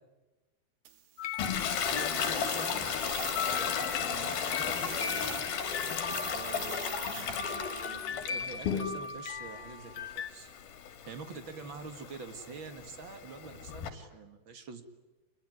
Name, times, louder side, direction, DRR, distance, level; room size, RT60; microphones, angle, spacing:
sound 1, 0.8-8.0, right 10 dB, 60° right, 3.0 m, -45 dB
sound 2, 1.2-2.8 3.3-10.3, left 7 dB, 80° left, 1.3 m, -39 dB
Toilet flush, 1.4-9.2 9.6-13.9, left 7 dB, 65° left, 4.1 m, -35 dB
voice 1, 1.8-5.5 6.2-7.4 7.8-10.5 11.0-14.8, right 5 dB, 45° right, 8 dB, 1.7 m, -46 dB
27.0 x 22.0 x 9.6 m, 1.2 s
omnidirectional pair, 4.7 m